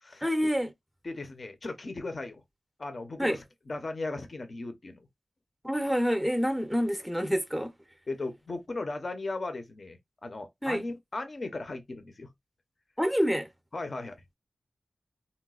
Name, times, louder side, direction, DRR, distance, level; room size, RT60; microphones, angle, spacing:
voice 1, 0.2-0.7 3.2-3.4 5.6-7.7 10.6-10.8 13.0-13.5, equal, ahead, 0.5 m, -27 dB
voice 2, 1.0-2.4 2.8-5.0 8.1-12.3 13.7-14.2, left 2 dB, 45° left, 0.6 m, -37 dB
3.9 x 2.2 x 2.3 m
wide cardioid pair, 110°, 0 cm